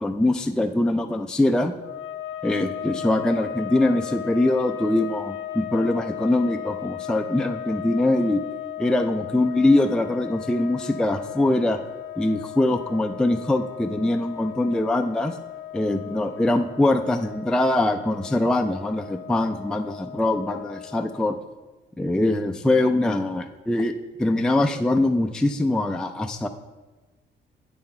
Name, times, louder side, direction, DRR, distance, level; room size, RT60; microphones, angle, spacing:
voice 1, 0.0-1.8 2.4-8.4 8.8-11.8 12.2-15.4 15.7-21.4 22.0-23.9 24.2-26.5, left 2 dB, 5° left, 5 dB, 0.4 m, -23 dB
sound 1, 1.8-21.4, left 10 dB, 80° left, 0.5 m, -36 dB
7.8 x 5.9 x 4.3 m, 1.2 s
cardioid pair, 90°, 20 cm